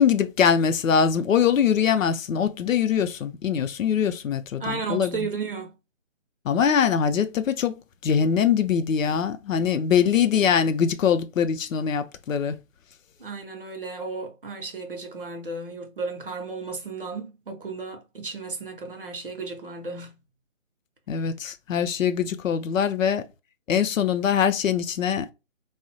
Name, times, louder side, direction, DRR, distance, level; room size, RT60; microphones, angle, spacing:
voice 1, 0.0-5.2 6.4-12.6 21.1-23.3 23.7-25.3, left 7 dB, 85° left, 0.5 m, -23 dB
voice 2, 4.6-5.7 13.2-20.2, right 4 dB, 45° right, 0.5 m, -34 dB
2.8 x 2.0 x 2.6 m
hypercardioid pair, 165°, 39 cm